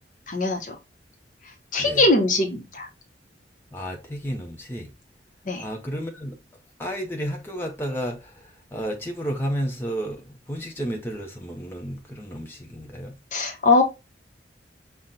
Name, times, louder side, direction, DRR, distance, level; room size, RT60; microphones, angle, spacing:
voice 1, 0.3-0.7 1.7-2.9 5.5-5.6 13.3-13.8, left 2 dB, 45° left, 0.8 m, -21 dB
voice 2, 3.7-4.9 5.6-6.4 6.8-13.2, equal, 10° left, 0.7 m, -32 dB
5.8 x 2.2 x 3.8 m
head